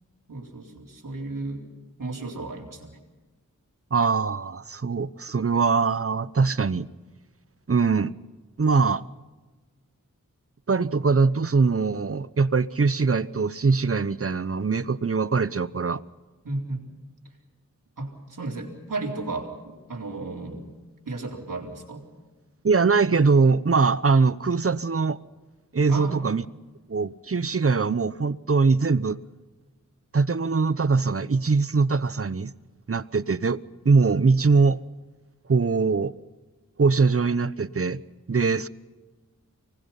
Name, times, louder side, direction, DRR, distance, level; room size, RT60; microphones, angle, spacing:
voice 1, 0.3-1.7 2.0-3.0 16.4-16.8 18.0-20.6 21.1-22.0 25.9-26.2, right 2 dB, 75° right, 4.2 m, -34 dB
voice 2, 3.9-6.9 7.7-8.1 8.6-9.0 10.7-16.0 22.6-25.2 25.7-26.4 26.9-29.2 30.1-32.5 32.9-33.6 33.8-34.8 35.5-36.1 36.8-38.0 38.3-38.7, right 4 dB, 45° right, 0.9 m, -22 dB
24.5 x 20.0 x 5.8 m
cardioid pair, 40°, 32 cm